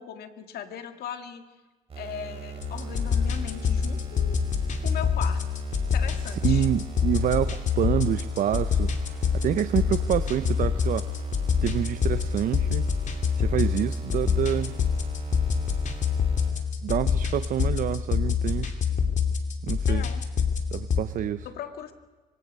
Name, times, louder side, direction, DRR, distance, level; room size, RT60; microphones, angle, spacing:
voice 1, 0.0-1.4 2.0-4.4 4.8-5.4 5.9-6.7 19.9-20.2 21.5-21.9, left 9 dB, 65° left, 7 dB, 2.0 m, -38 dB
sound 1, 1.9-16.5, right 8 dB, 35° right, 6.6 m, -40 dB
sound 2, 2.6-21.0, left 6 dB, 45° left, 2.6 m, -26 dB
voice 2, 6.3-11.1 11.6-12.9 13.4-14.7 16.8-18.7 19.6-20.0 20.7-21.5, right 11 dB, 55° right, 13 dB, 0.7 m, -27 dB
25.5 x 24.5 x 5.4 m, 1.3 s
cardioid pair, 110°, 17 cm